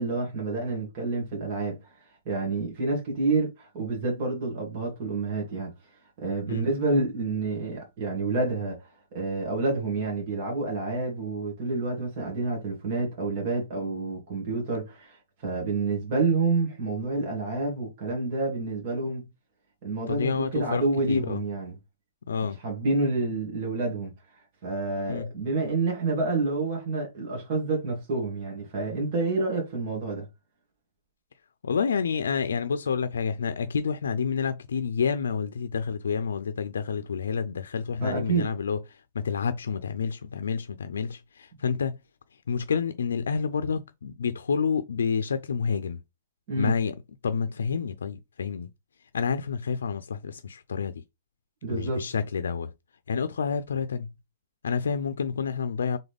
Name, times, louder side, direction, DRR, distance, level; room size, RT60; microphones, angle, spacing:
voice 1, 0.0-1.9 2.3-5.7 6.2-19.3 19.8-21.8 22.6-24.1 24.6-30.3 38.0-38.5 46.5-46.7 51.6-52.1, right 3 dB, 40° right, 2.2 m, -28 dB
voice 2, 20.1-21.4 22.3-22.6 25.1-25.3 31.6-42.0 42.5-46.0 46.6-47.0 47.2-48.7 49.1-51.0 51.7-52.7 53.1-54.1 54.6-56.0, left 6 dB, 90° left, 0.4 m, -29 dB
4.0 x 3.8 x 3.4 m
hypercardioid pair, 155°, 0 cm